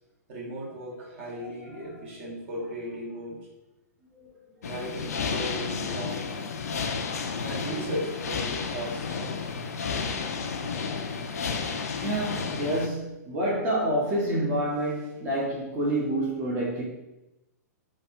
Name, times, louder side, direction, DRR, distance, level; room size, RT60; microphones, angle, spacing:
voice 1, 0.3-3.4 4.6-6.4 7.4-9.5, equal, 50° right, -4 dB, 1.2 m, -36 dB
voice 2, 1.2-1.5 1.8-2.0 4.1-4.3 11.3-11.4 11.9-16.8, right 1 dB, 25° right, -6 dB, 0.7 m, -28 dB
sound 1, 4.6-12.9, left 5 dB, 65° left, 0.4 m, -32 dB
3.3 x 2.3 x 2.6 m, 0.93 s
figure-of-eight pair, 110°, 9 cm